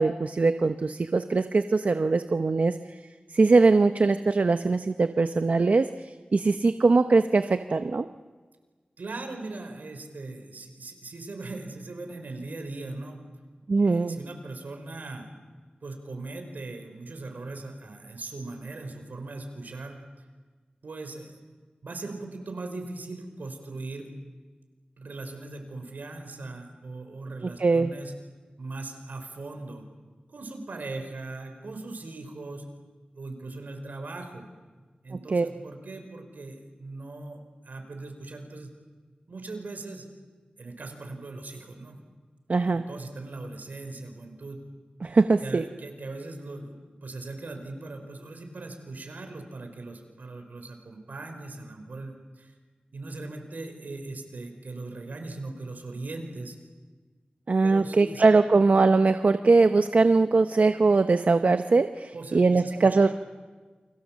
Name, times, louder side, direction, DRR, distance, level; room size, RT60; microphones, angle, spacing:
voice 1, 0.0-2.8 3.3-8.1 13.7-14.2 27.6-27.9 35.3-35.5 42.5-42.8 45.0-45.6 57.5-63.1, right 3 dB, 60° right, 9 dB, 0.8 m, -21 dB
voice 2, 9.0-13.2 13.8-15.3 15.8-20.0 20.8-21.3 21.8-24.1 25.0-28.1 28.6-29.8 30.3-32.6 33.1-34.5 35.0-38.7 39.3-40.0 40.6-42.0 42.7-44.6 45.4-52.5 52.9-56.5 57.6-58.2 62.1-63.1, right 2 dB, 75° right, 5 dB, 4.7 m, -39 dB
29.0 x 24.0 x 7.4 m, 1.4 s
wide cardioid pair, 70°, 3 cm